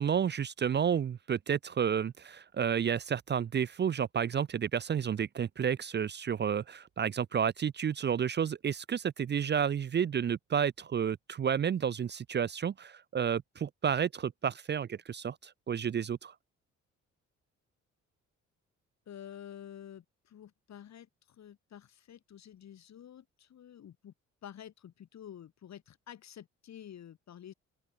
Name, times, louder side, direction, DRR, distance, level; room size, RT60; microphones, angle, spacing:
voice 1, 0.0-16.3, right 8 dB, 35° right, 0.6 m, -31 dB
voice 2, 19.1-24.1 24.4-27.5, left 10 dB, 65° left, 5.3 m, -50 dB
open air
cardioid pair, 90°, 30 cm